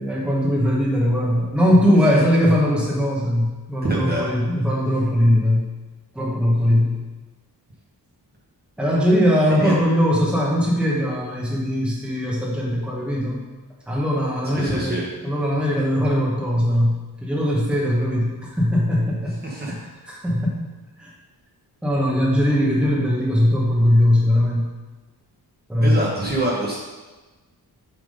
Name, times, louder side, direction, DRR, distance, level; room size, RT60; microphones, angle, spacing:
voice 1, 0.0-5.7 6.1-7.0 8.8-13.5 13.9-19.4 19.7-20.6 21.0-21.1 21.8-24.7 25.7-26.0, equal, 5° right, -5 dB, 1.4 m, -20 dB
voice 2, 3.8-4.2 9.6-9.7 14.5-15.0 19.4-19.7 25.8-26.8, right 2 dB, 25° right, -4 dB, 1.3 m, -25 dB
6.9 x 3.8 x 5.3 m, 1.2 s
wide cardioid pair, 115°, 39 cm